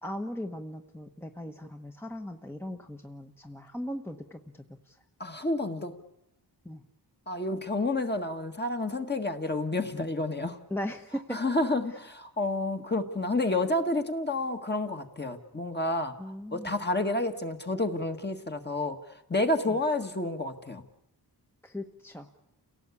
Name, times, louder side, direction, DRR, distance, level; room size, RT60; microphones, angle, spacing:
voice 1, 0.0-5.0 6.6-6.8 10.7-11.4 11.9-12.0 16.2-16.7 19.7-19.8 21.6-22.3, left 1 dB, 5° left, 4 dB, 1.2 m, -38 dB
voice 2, 5.2-5.9 7.3-10.6 11.3-16.1 16.5-19.0 19.3-20.8, left 2 dB, 25° left, 5 dB, 1.9 m, -29 dB
30.0 x 17.5 x 8.5 m, 0.89 s
wide cardioid pair, 130°, 41 cm